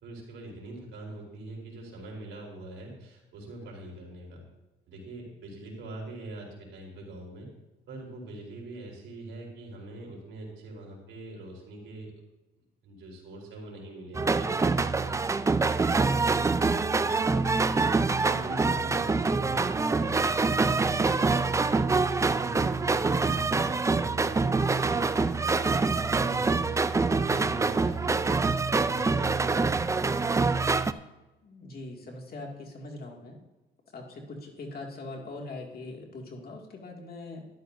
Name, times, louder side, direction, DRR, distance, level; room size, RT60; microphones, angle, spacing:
voice 1, 0.0-4.4 4.9-7.5 7.9-12.2 12.8-15.2 15.8-17.7 18.3-28.6 28.9-30.0, right 1 dB, 75° right, -2 dB, 3.8 m, -43 dB
sound 1, 14.1-30.9, right 4 dB, 15° right, 0.4 m, -25 dB
voice 2, 31.4-33.4 33.9-37.5, left 2 dB, 50° left, 0 dB, 2.3 m, -41 dB
12.5 x 11.5 x 2.6 m, 1.1 s
cardioid pair, 90°, 20 cm